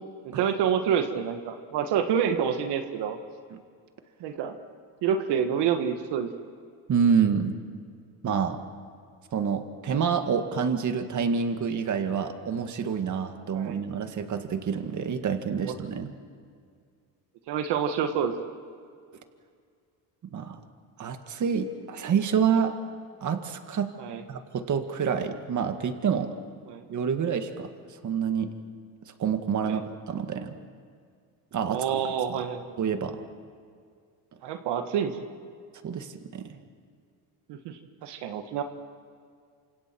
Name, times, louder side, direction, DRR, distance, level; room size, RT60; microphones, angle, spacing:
voice 1, 0.2-3.2 4.2-4.5 5.0-6.3 13.5-13.8 15.6-15.7 17.5-18.3 24.0-24.2 26.7-26.8 29.6-29.8 31.7-32.6 34.4-35.3 37.5-38.6, right 8 dB, 75° right, 7 dB, 1.7 m, -28 dB
voice 2, 6.9-7.6 8.2-8.6 9.3-16.1 20.2-20.6 21.0-22.7 23.2-23.9 24.3-26.3 26.9-27.7 28.0-28.5 29.2-29.8 30.1-30.6 31.5-32.0 32.3-32.4 32.8-33.2 35.8-36.6, right 7 dB, 45° right, 7 dB, 1.9 m, -27 dB
28.5 x 26.5 x 4.6 m, 2.2 s
cardioid pair, 105°, 41 cm